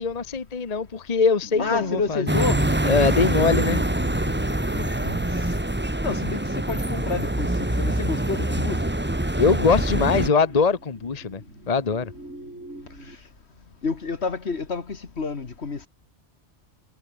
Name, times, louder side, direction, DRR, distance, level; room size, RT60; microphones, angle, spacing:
voice 1, 0.0-2.5 2.8-3.8 9.4-11.4 11.7-12.1, left 5 dB, 35° left, 1.1 m, -22 dB
sound 1, 1.4-13.1, right 1 dB, 85° right, 7.4 m, -42 dB
voice 2, 1.6-2.7 4.8-5.2 6.0-8.9 13.0-13.2 13.8-15.9, left 4 dB, 65° left, 2.1 m, -29 dB
sound 2, 2.3-10.3, right 1 dB, 10° right, 1.3 m, -25 dB
omnidirectional pair, 1.2 m